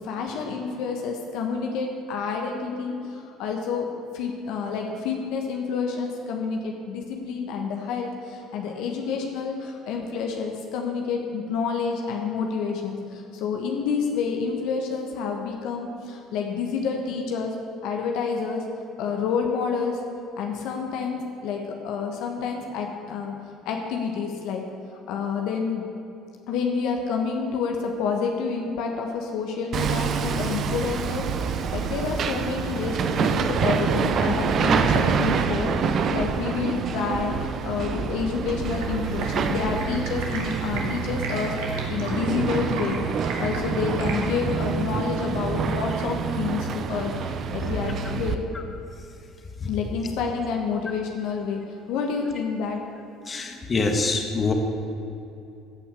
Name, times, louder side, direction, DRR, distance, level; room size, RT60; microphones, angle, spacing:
voice 1, 0.0-17.5 17.8-18.7 19.0-20.0 20.4-23.4 23.6-24.6 25.1-25.9 26.5-43.0 43.4-48.7 49.7-52.8, left 5 dB, 70° left, 2 dB, 1.3 m, -29 dB
Hammer, 29.7-48.4, right 6 dB, 50° right, 0.8 m, -26 dB
Stream, 38.7-44.2, right 3 dB, 75° right, 2.2 m, -37 dB
voice 2, 53.3-54.5, left 3 dB, 35° left, 3 dB, 1.8 m, -25 dB
15.5 x 5.8 x 7.8 m, 2.7 s
hypercardioid pair, 70°, 0 cm